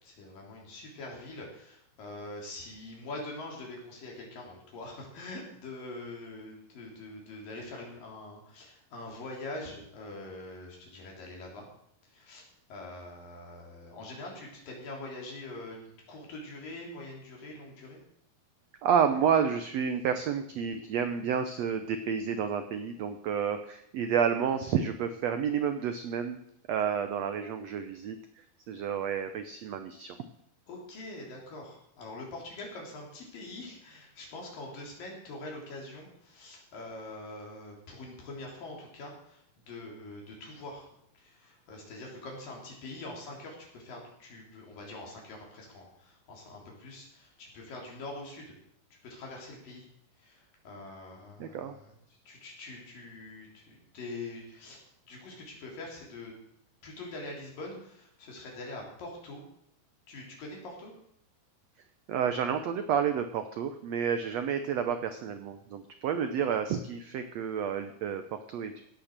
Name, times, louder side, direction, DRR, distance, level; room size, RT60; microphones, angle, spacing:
voice 1, 0.0-11.7 12.1-18.0 30.7-40.9 41.2-48.5 49.0-49.9 50.2-52.0 52.3-54.8 55.1-56.3 56.8-59.4 60.1-60.9, left 2 dB, 70° left, -1 dB, 5.2 m, -44 dB
voice 2, 18.8-26.4 26.7-28.2 28.7-30.2 51.4-51.7 62.1-68.8, right 7 dB, 75° right, 9 dB, 1.5 m, -30 dB
17.0 x 8.8 x 6.7 m, 0.73 s
omnidirectional pair, 4.1 m